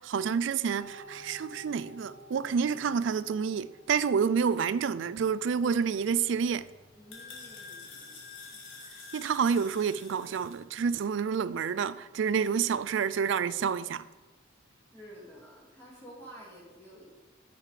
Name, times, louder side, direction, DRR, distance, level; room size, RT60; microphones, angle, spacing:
voice 1, 0.0-6.7 9.1-14.1, right 6 dB, 65° right, 0.3 m, -29 dB
sound 1, 0.8-15.5, equal, 35° right, 2.2 m, -56 dB
sound 2, 6.0-10.6, left 4 dB, 65° left, 2.1 m, -48 dB
voice 2, 7.0-8.3 14.9-17.1, equal, 10° left, 2.4 m, -50 dB
8.9 x 6.7 x 4.9 m
head